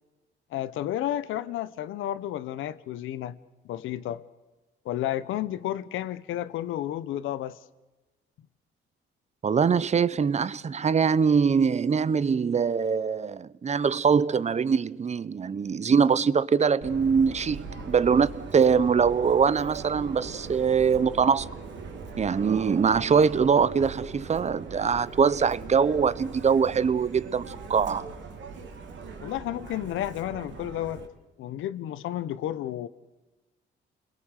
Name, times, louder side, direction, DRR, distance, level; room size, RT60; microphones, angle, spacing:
voice 1, 0.5-3.4 3.6-4.2 4.8-7.6 29.2-31.0 31.4-32.9, left 12 dB, 85° left, 1.1 m, -31 dB
voice 2, 9.4-21.5 22.2-28.1, right 6 dB, 35° right, 0.8 m, -23 dB
Subway metro underground, 16.8-31.1, right 4 dB, 70° right, 3.4 m, -41 dB
29.5 x 21.5 x 6.6 m
cardioid pair, 90°, 20 cm